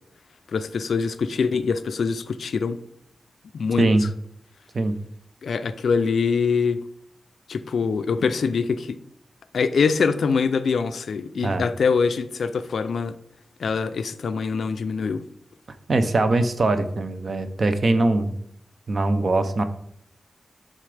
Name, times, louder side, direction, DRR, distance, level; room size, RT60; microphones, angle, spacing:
voice 1, 0.5-2.8 3.5-3.9 5.4-6.8 7.5-9.0 9.5-13.2 13.6-15.2, left 5 dB, 70° left, 0.4 m, -24 dB
voice 2, 15.9-18.3 18.9-19.6, right 2 dB, 45° right, 0.6 m, -21 dB
9.7 x 3.8 x 3.3 m
wide cardioid pair, 150°, 0 cm